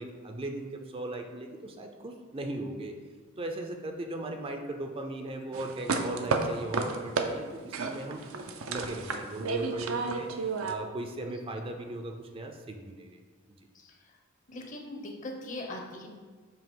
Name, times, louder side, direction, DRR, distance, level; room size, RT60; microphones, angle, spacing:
voice 1, 0.0-2.9 3.4-8.3 8.7-13.2, right 1 dB, 25° right, 3 dB, 0.5 m, -38 dB
sound 1, 5.5-7.3 7.7-10.7, right 4 dB, 75° right, 0.6 m, -31 dB
voice 2, 13.7-14.2 14.5-16.1, left 1 dB, 40° left, 2 dB, 0.9 m, -41 dB
7.6 x 2.9 x 5.3 m, 1.4 s
head